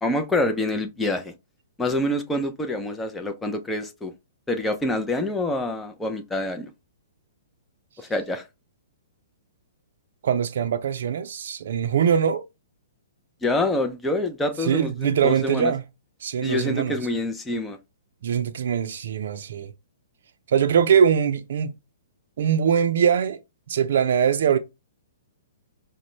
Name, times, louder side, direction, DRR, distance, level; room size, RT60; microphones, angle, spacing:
voice 1, 0.0-1.3 1.8-4.1 4.5-6.7 8.0-8.5 13.4-15.7 16.4-17.8, left 1 dB, 10° left, 0.6 m, -26 dB
voice 2, 10.2-12.4 14.6-15.8 16.2-17.0 18.2-19.7 20.5-21.7 22.4-23.4 23.7-24.6, right 7 dB, 65° right, 0.4 m, -22 dB
5.1 x 2.2 x 3.1 m
hypercardioid pair, 140°, 0 cm